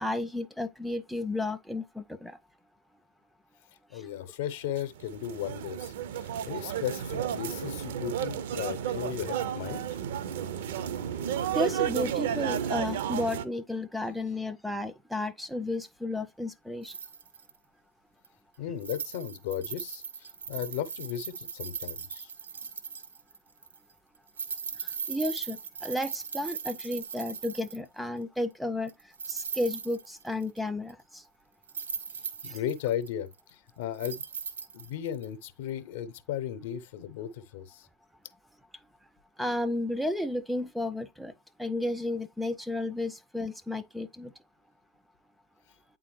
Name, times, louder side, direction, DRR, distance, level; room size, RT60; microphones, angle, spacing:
voice 1, 0.0-2.4 11.5-16.9 24.8-28.9 29.3-31.2 39.4-41.3 41.6-44.3, left 1 dB, ahead, 0.4 m, -33 dB
voice 2, 3.9-9.8 18.6-22.3 32.1-34.2 34.7-37.9, left 10 dB, 50° left, 0.7 m, -36 dB
sound 1, 4.8-13.5, right 9 dB, 55° right, 0.5 m, -32 dB
sound 2, 16.8-17.5 18.2-18.3 18.8-23.4 23.6-23.8 24.3-27.9 28.9-30.6 30.9-31.0 31.6-33.5 34.0-35.3 35.7-35.8, right 6 dB, 70° right, 0.9 m, -39 dB
8.7 x 3.8 x 3.0 m
figure-of-eight pair, 90°, 0 cm